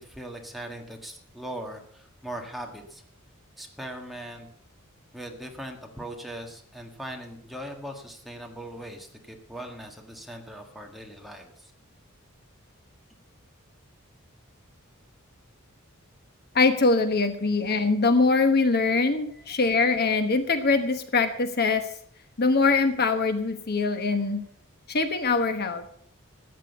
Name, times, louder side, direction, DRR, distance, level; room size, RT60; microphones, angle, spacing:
voice 1, 0.0-3.0 3.6-4.5 5.1-11.7 19.3-19.5, right 1 dB, ahead, 2 dB, 1.7 m, -40 dB
voice 2, 16.5-21.9 22.4-24.4 24.9-26.1, left 3 dB, 50° left, 8 dB, 1.1 m, -23 dB
14.0 x 9.0 x 6.7 m, 0.63 s
head